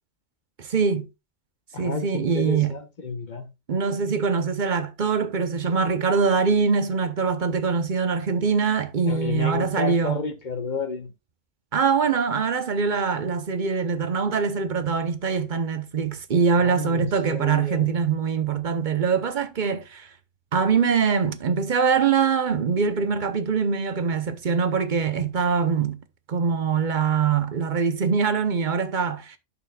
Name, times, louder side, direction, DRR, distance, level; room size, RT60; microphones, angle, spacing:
voice 1, 0.6-1.1 1.8-2.8 3.7-10.2 11.7-20.1 20.5-26.0 26.3-29.4, right 5 dB, 45° right, 0.9 m, -23 dB
voice 2, 1.7-3.5 9.1-11.1 16.6-17.9, left 4 dB, 40° left, 1.0 m, -31 dB
11.0 x 5.8 x 2.3 m
omnidirectional pair, 1.3 m